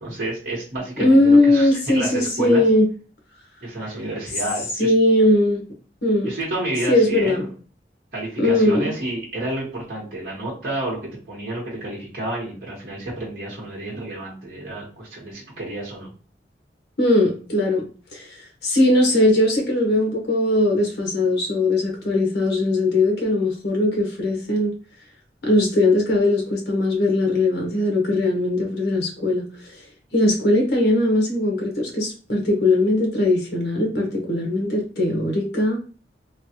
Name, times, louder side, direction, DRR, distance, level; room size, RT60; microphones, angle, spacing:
voice 1, 0.0-2.6 3.6-4.9 6.2-7.4 8.1-16.1, right 1 dB, 55° right, -5 dB, 1.1 m, -30 dB
voice 2, 1.0-2.9 4.8-5.6 6.0-6.3 6.9-7.5 8.4-8.8 17.0-17.8 18.1-24.7 25.4-29.8 30.1-35.8, left 1 dB, 70° left, 0 dB, 1.0 m, -19 dB
3.2 x 2.3 x 2.8 m, 0.37 s
head